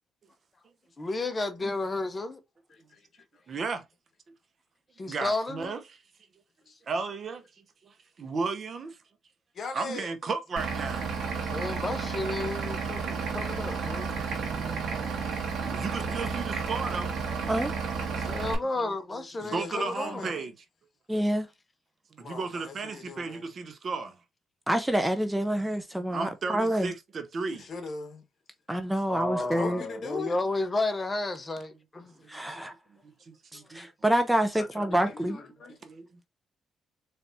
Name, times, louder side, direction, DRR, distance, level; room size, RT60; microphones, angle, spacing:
voice 1, 1.0-2.4 5.0-5.7 11.5-14.1 18.2-20.3 29.1-32.1, left 2 dB, 25° left, 0.8 m, -32 dB
voice 2, 2.7-3.0 9.5-10.1 19.4-20.5 22.2-23.5 27.5-28.2 29.4-30.4 32.5-32.7 33.6-33.9 34.6-35.8, left 4 dB, 50° left, 1.3 m, -40 dB
voice 3, 3.5-3.8 5.1-5.8 6.9-7.4 7.8-9.0 9.7-11.2 15.6-17.2 18.1-18.3 19.4-20.5 22.2-24.2 26.1-27.7 32.3-32.4 33.0-33.9 35.8-36.1, right 4 dB, 50° right, 0.8 m, -34 dB
Vehicle / Engine, 10.6-18.6, right 5 dB, 65° right, 1.8 m, -32 dB
voice 4, 21.1-21.5 24.7-26.9 28.7-29.8 32.3-32.7 33.5-35.4, right 1 dB, 10° right, 0.6 m, -27 dB
4.0 x 3.3 x 2.7 m
cardioid pair, 90°, 0 cm